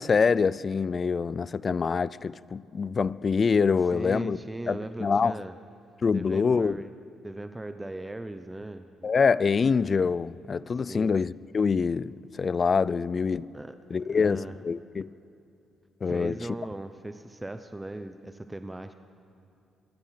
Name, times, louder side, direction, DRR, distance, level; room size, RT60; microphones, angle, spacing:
voice 1, 0.0-4.4 4.7-5.3 6.0-6.8 9.0-13.5 13.9-15.1 16.0-16.3, left 5 dB, 40° left, 0.4 m, -25 dB
voice 2, 3.9-5.6 6.1-6.9 7.2-9.1 10.7-11.2 13.5-13.8 14.1-14.6 16.1-18.9, right 2 dB, 15° right, 0.8 m, -38 dB
26.0 x 22.5 x 5.8 m
cardioid pair, 90°, 0 cm